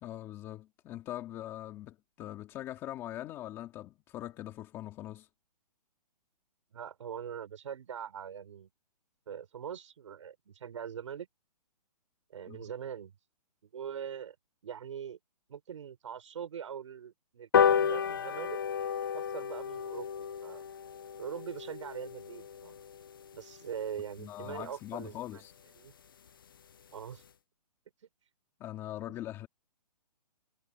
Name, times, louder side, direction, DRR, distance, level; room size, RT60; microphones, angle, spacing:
voice 1, 0.0-5.3 12.5-12.6 24.2-25.5 28.6-29.5, left 13 dB, 10° left, 2.1 m, -42 dB
voice 2, 6.7-8.7 9.3-11.3 12.3-13.2 13.6-14.3 14.6-15.2 15.5-18.6 19.1-20.6 21.2-22.8 23.3-25.4 25.8-25.9 26.9-27.2 29.1-29.2, right 8 dB, 50° right, 6.2 m, -42 dB
sound 1, 17.5-24.3 24.7-24.8 25.1-25.2 25.5-25.6 25.9-26.0 26.3-26.6 27.0-27.1, left 7 dB, 35° left, 0.5 m, -32 dB
hypercardioid pair, 175°, 21 cm